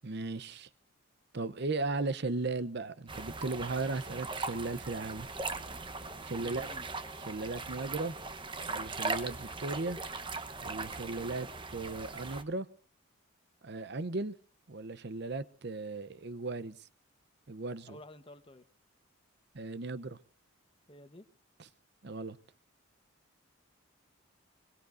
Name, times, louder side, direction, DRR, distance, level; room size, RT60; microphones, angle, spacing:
voice 1, 0.0-0.7 1.3-5.3 6.2-6.7 7.3-8.2 8.6-10.0 10.6-12.7 13.6-14.3 14.7-16.9 17.5-18.0 19.5-20.2 22.0-22.4, right 3 dB, 50° right, 0.7 m, -36 dB
sound 1, 3.1-12.4, right 3 dB, 20° right, 0.9 m, -39 dB
voice 2, 6.3-6.9 17.9-18.7 20.9-21.2, left 1 dB, 25° left, 1.1 m, -51 dB
25.0 x 22.0 x 2.6 m
head